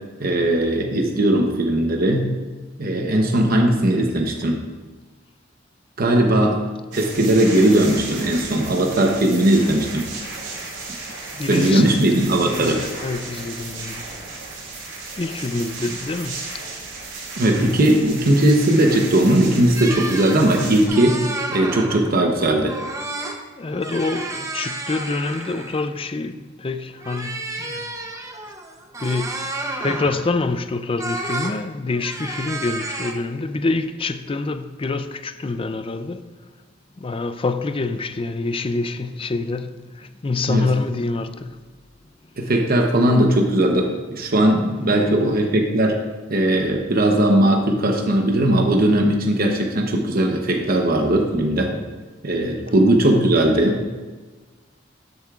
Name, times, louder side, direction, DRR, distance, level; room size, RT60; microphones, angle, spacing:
voice 1, 0.2-2.3 2.8-4.6 6.0-6.6 6.9-10.1 11.5-12.8 17.4-21.2 21.5-22.7 40.5-40.7 42.4-46.0 46.3-51.7 52.2-53.8, right 1 dB, 50° right, 0.9 m, -18 dB
sound 1, 6.9-20.9, right 3 dB, 65° right, 2.9 m, -34 dB
voice 2, 11.3-12.1 12.6-14.1 15.2-16.4 23.6-27.9 29.0-36.2 37.0-41.6 45.0-45.6, left 3 dB, 30° left, 0.4 m, -26 dB
sound 2, 19.8-22.2 22.7-23.4 23.7-25.9 27.0-30.3 31.0-31.6 31.9-33.1, right 2 dB, 15° right, 0.8 m, -31 dB
12.5 x 8.1 x 2.5 m
head